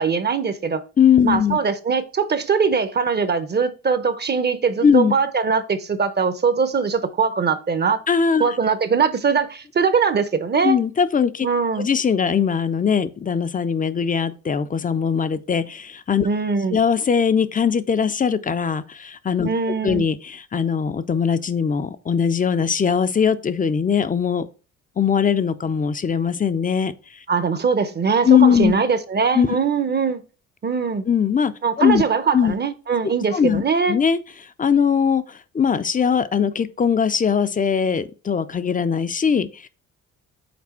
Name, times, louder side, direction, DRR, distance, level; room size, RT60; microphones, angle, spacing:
voice 1, 0.0-0.8 1.2-8.0 8.4-10.8 11.4-11.9 16.2-16.8 19.4-20.1 27.3-30.2 30.6-31.0 31.6-34.0, right 5 dB, 35° right, 0.8 m, -21 dB
voice 2, 1.0-1.6 4.8-5.1 8.1-8.5 10.6-11.5 11.8-16.3 16.7-19.5 19.8-24.5 25.0-27.2 28.2-28.7 29.3-29.5 31.1-32.0 32.3-32.5 33.0-33.6 33.9-34.2 34.6-39.7, left 7 dB, 25° left, 0.5 m, -20 dB
6.0 x 4.2 x 4.2 m
cardioid pair, 90°, 30 cm